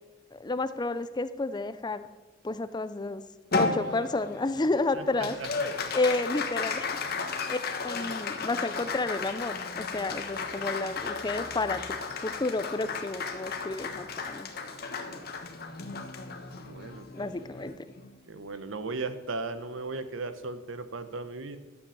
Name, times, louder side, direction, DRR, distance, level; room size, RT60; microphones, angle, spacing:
voice 1, 0.3-2.1 2.4-3.2 3.5-5.4 5.9-6.9 7.5-7.6 7.8-11.8 12.2-14.5 17.1-17.8, left 2 dB, 20° left, 13 dB, 0.5 m, -31 dB
Applause, 3.5-18.2, left 4 dB, 55° left, 1.2 m, -34 dB
voice 2, 4.9-5.5 6.6-6.7 15.0-15.2 16.6-17.3 18.3-21.6, right 3 dB, 80° right, 11 dB, 0.9 m, -37 dB
12.0 x 7.6 x 7.1 m, 1.3 s
head